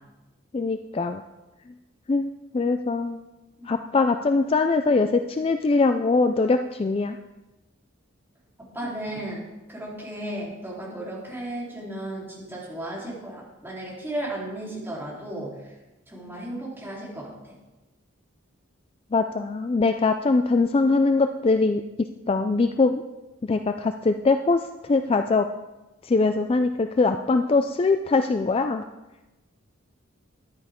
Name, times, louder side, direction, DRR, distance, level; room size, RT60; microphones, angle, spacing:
voice 1, 0.5-1.2 2.1-3.2 3.7-7.2 19.1-23.0 23.4-25.5 26.0-28.8, left 3 dB, 30° left, 8 dB, 0.3 m, -22 dB
voice 2, 8.6-9.4 9.7-15.7 16.1-17.5, right 1 dB, 10° right, -6 dB, 3.7 m, -35 dB
13.5 x 10.5 x 3.7 m, 1.1 s
head